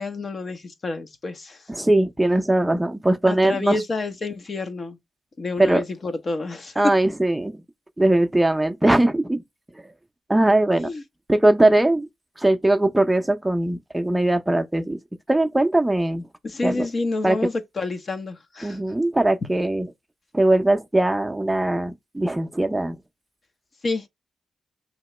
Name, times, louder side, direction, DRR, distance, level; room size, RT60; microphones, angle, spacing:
voice 1, 0.0-1.6 3.3-5.0 5.4-6.9 10.8-11.0 16.4-18.8 23.8-24.0, left 3 dB, 50° left, 0.7 m, -28 dB
voice 2, 1.7-3.8 5.6-5.8 6.8-7.5 8.0-9.4 10.3-10.9 11.3-12.1 12.4-15.0 15.3-16.2 16.6-16.9 17.2-17.4 18.6-19.9 20.3-23.0, right 1 dB, 10° right, 0.5 m, -20 dB
2.9 x 2.8 x 4.2 m
cardioid pair, 65°, 0 cm